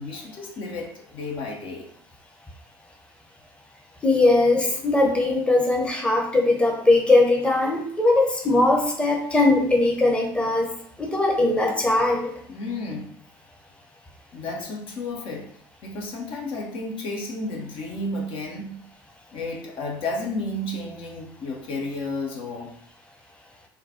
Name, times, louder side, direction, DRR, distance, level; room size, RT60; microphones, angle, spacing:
voice 1, 0.0-1.9 12.5-13.1 14.3-15.5 15.8-18.8 19.3-22.7, left 2 dB, 50° left, 0 dB, 0.8 m, -32 dB
voice 2, 4.0-10.7 11.0-12.4, left 2 dB, 10° left, 0 dB, 0.9 m, -20 dB
3.7 x 2.3 x 4.2 m, 0.65 s
figure-of-eight pair, 60°, 12 cm